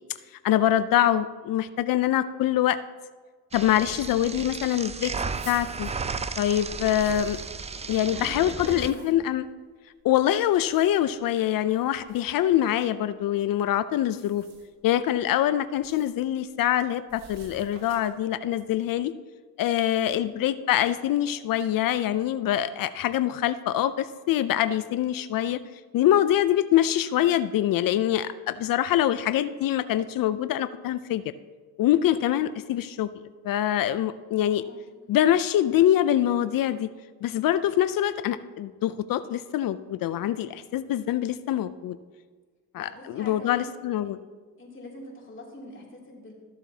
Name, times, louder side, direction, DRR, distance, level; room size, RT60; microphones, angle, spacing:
voice 1, 0.4-2.8 3.5-5.1 5.5-5.9 6.4-7.4 7.9-9.5 10.0-14.4 14.8-19.1 19.6-25.6 25.9-31.2 31.8-33.1 33.4-34.6 35.1-36.9 37.2-42.0 42.7-44.2, left 12 dB, 65° left, 14 dB, 0.5 m, -24 dB
sound 1, 3.5-8.9, right 5 dB, 20° right, 0.3 m, -34 dB
sound 2, 5.3-7.9 8.5-9.3 10.5-11.2 12.0-12.2 14.0-14.8 15.7-16.2 17.1-18.3, right 2 dB, 65° right, 1.7 m, -47 dB
voice 2, 8.1-9.1 19.9-20.3 34.4-34.8 42.7-43.7 44.6-46.3, left 1 dB, 35° left, -3 dB, 2.8 m, -44 dB
14.0 x 7.0 x 2.8 m, 1.5 s
cardioid pair, 90°, 36 cm